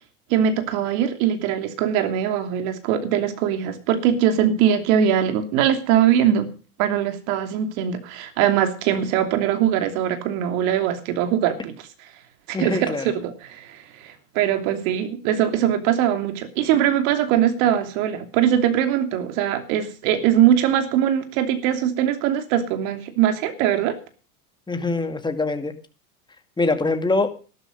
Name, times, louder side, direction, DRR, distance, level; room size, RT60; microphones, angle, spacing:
voice 1, 0.3-6.5 6.8-11.7 12.5-24.0, right 10 dB, 65° right, 8 dB, 3.0 m, -21 dB
voice 2, 12.5-13.1 24.7-25.7 26.6-27.3, left 3 dB, 10° left, 7 dB, 2.2 m, -23 dB
12.5 x 12.5 x 5.3 m, 0.37 s
hypercardioid pair, 105°, 45 cm